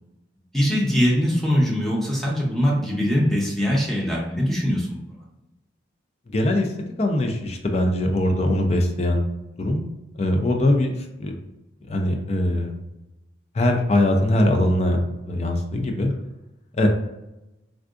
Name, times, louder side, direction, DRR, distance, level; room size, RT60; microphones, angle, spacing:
voice 1, 0.5-5.0, equal, ahead, -4 dB, 0.7 m, -22 dB
voice 2, 6.3-6.7 7.0-9.2 9.6-9.9 10.2-11.3 11.9-12.7 13.5-16.1 16.8-16.9, left 1 dB, 35° left, 3 dB, 0.4 m, -21 dB
3.6 x 2.3 x 2.4 m, 0.95 s
head